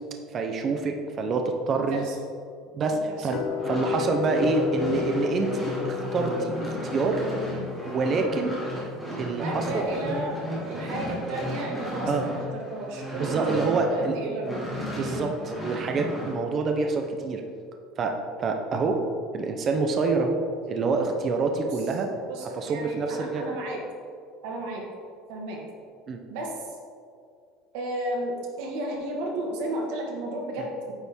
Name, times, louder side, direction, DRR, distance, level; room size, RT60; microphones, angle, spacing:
voice 1, 0.3-2.1 2.7-7.2 7.8-8.6 9.2-9.8 12.1-12.2 13.2-14.2 15.0-15.3 15.6-17.4 18.0-19.0 19.3-20.4 20.7-22.1 22.5-23.4 26.1-26.2, right 4 dB, 25° right, 4 dB, 0.4 m, -27 dB
voice 2, 2.9-3.3 3.9-4.1 9.4-10.4 10.6-14.7 15.1-15.4 21.7-21.8 22.3-23.8 24.4-24.8 25.3-25.6 26.3-26.8 27.7-30.9, right 1 dB, 65° right, 0 dB, 1.4 m, -33 dB
sound 1, 3.3-9.4, left 10 dB, 40° left, 0.4 m, -33 dB
sound 2, 3.4-14.1 14.4-16.4, equal, ahead, 1.5 m, -34 dB
8.8 x 4.2 x 3.5 m, 2.3 s
cardioid pair, 180°, 0 cm